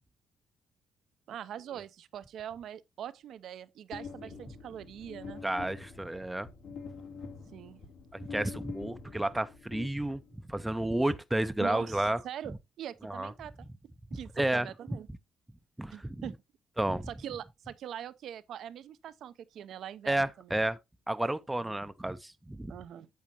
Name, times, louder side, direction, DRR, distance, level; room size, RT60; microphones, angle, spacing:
voice 1, 1.3-5.4 7.5-7.8 11.6-13.7 14.1-15.1 15.9-16.3 17.1-20.5 21.6-21.7 22.7-23.1, right 10 dB, 75° right, 0.6 m, -43 dB
sound 1, 3.9-10.5, left 5 dB, 90° left, 2.6 m, -45 dB
voice 2, 5.4-6.5 8.3-10.2 10.5-12.2 13.0-13.3 14.4-14.7 15.8-16.2 16.8-17.1 20.1-20.8 21.1-22.7, right 1 dB, 10° right, 0.5 m, -31 dB
8.6 x 7.4 x 2.9 m
cardioid pair, 90°, 0 cm